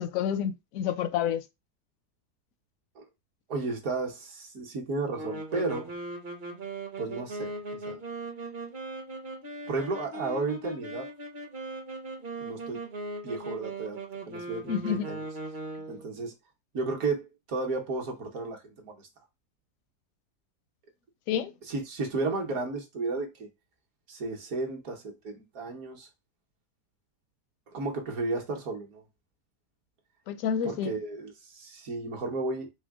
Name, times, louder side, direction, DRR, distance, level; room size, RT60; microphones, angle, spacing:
voice 1, 0.0-1.4 14.7-15.0 21.3-21.5 30.3-30.9, left 8 dB, 70° left, 0.8 m, -29 dB
voice 2, 3.5-5.9 7.0-7.5 7.9-8.0 9.7-11.1 12.4-12.8 13.2-15.2 15.9-16.3 16.7-19.1 21.7-23.5 24.1-26.1 27.7-29.0 30.6-32.7, right 3 dB, 60° right, 1.3 m, -33 dB
sound 1, 5.1-16.1, right 2 dB, 35° right, 0.8 m, -39 dB
4.4 x 2.2 x 3.5 m
omnidirectional pair, 1.8 m